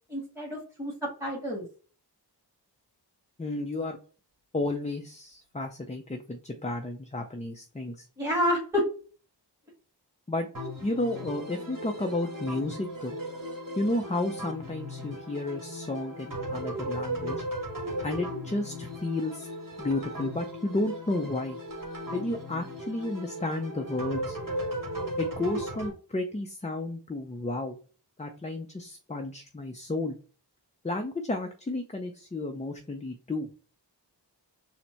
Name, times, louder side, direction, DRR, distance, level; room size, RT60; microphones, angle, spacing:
voice 1, 0.1-1.6 8.2-8.9, equal, 5° right, -4 dB, 1.6 m, -29 dB
voice 2, 3.4-4.0 4.5-8.1 10.3-10.5 10.8-13.2 13.7-17.4 18.0-19.5 19.8-21.6 22.1-24.4 25.2-27.8 28.2-30.2 30.8-33.5, left 2 dB, 15° left, 4 dB, 0.5 m, -32 dB
sound 1, 10.5-25.9, equal, 50° right, 1.4 m, -36 dB
4.3 x 2.1 x 4.3 m, 0.38 s
wide cardioid pair, 65°, 42 cm